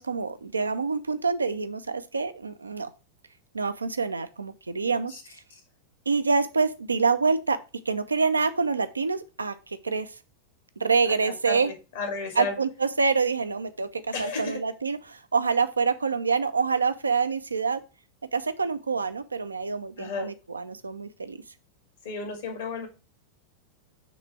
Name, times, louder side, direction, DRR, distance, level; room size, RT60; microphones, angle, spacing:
voice 1, 0.0-2.9 3.5-5.4 6.1-7.6 7.9-10.2 10.8-11.7 12.4-17.8 18.3-21.4, right 4 dB, 75° right, 11 dB, 0.6 m, -26 dB
voice 2, 11.0-12.6 14.1-14.6 20.0-20.3 22.0-22.9, left 4 dB, 60° left, 4 dB, 2.1 m, -33 dB
6.1 x 3.3 x 5.9 m, 0.31 s
figure-of-eight pair, 90°, 0 cm